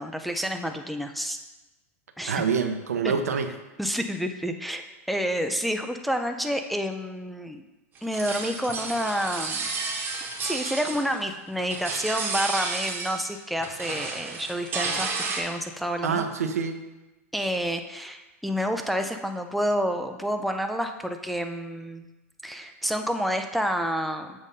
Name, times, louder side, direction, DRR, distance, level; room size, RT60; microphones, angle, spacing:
voice 1, 0.0-1.4 2.2-2.4 3.0-3.1 3.8-7.6 8.0-9.7 10.4-16.2 17.3-22.0 22.4-24.4, equal, ahead, 5 dB, 0.4 m, -29 dB
voice 2, 2.3-3.5 16.0-16.8, right 6 dB, 80° right, 7 dB, 0.6 m, -26 dB
sound 1, 8.0-11.3 11.6-13.3 13.6-15.4, right 4 dB, 25° right, 1.1 m, -32 dB
7.0 x 2.6 x 5.5 m, 1.1 s
hypercardioid pair, 105°, 8 cm